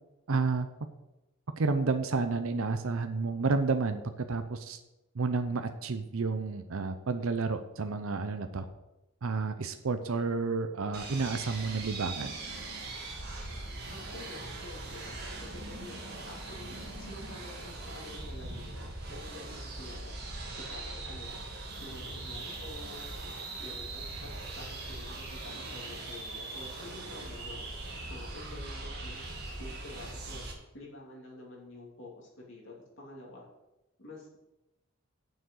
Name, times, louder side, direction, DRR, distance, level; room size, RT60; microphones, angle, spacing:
voice 1, 0.3-0.7 1.6-4.8 5.1-8.7 9.2-12.3, right 4 dB, 70° right, 8 dB, 0.6 m, -30 dB
sound 1, 10.9-30.5, right 2 dB, 50° right, 2.1 m, -41 dB
voice 2, 13.9-20.1 20.5-21.3 21.8-23.1 23.6-27.6 28.1-29.3 29.6-30.4 30.7-33.4 34.0-34.4, left 2 dB, 55° left, -3 dB, 3.0 m, -48 dB
sound 2, 21.7-27.5, left 1 dB, 75° left, 3.0 m, -58 dB
7.0 x 6.4 x 7.8 m, 0.96 s
head